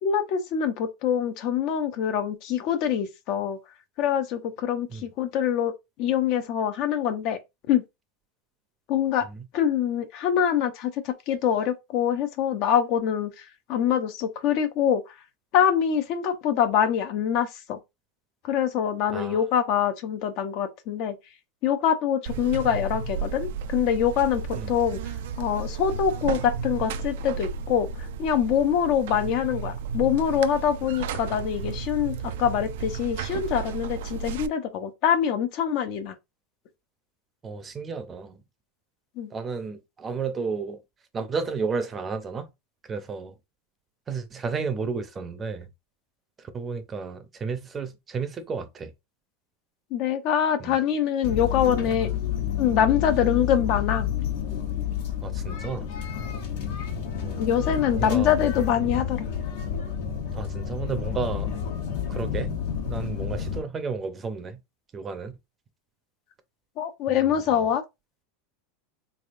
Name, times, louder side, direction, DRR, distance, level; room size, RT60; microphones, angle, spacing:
voice 1, 0.0-3.6 4.0-5.7 6.0-7.4 7.7-7.8 8.9-9.3 9.5-15.1 15.5-17.8 18.4-21.2 21.6-24.4 24.7-36.1 39.2-39.3 49.9-52.1 52.6-54.1 57.4-59.3 66.8-67.8, left 9 dB, 50° left, 0.6 m, -24 dB
voice 2, 19.1-19.4 24.5-24.7 37.4-38.4 39.3-40.8 41.1-42.5 42.8-43.4 44.1-45.7 46.4-48.9 50.6-50.8 55.2-55.9 57.2-58.4 60.3-61.7 62.1-62.6 62.9-64.6 64.9-65.3 67.1-67.6, right 5 dB, 20° right, 0.6 m, -32 dB
Buzz, 22.3-34.5, right 5 dB, 75° right, 0.3 m, -33 dB
sound 1, 51.2-63.6, left 9 dB, 70° left, 1.1 m, -30 dB
3.5 x 3.4 x 2.5 m
supercardioid pair, 130°, 0 cm